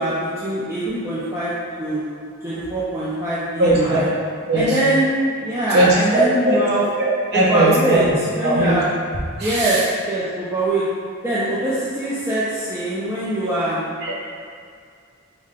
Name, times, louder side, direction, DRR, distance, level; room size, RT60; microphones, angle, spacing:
voice 1, 0.0-1.5 1.8-2.0 2.4-4.1 4.5-5.1 5.4-6.8 7.3-8.9 9.4-10.8 11.2-13.8, right 1 dB, 15° right, -11 dB, 0.5 m, -22 dB
voice 2, 3.6-4.0 4.5-4.7 5.7-6.6 7.0-8.1 8.4-8.8 9.4-9.8 14.0-14.2, right 1 dB, 50° right, -7 dB, 0.7 m, -18 dB
5.0 x 2.1 x 3.6 m, 2.2 s
head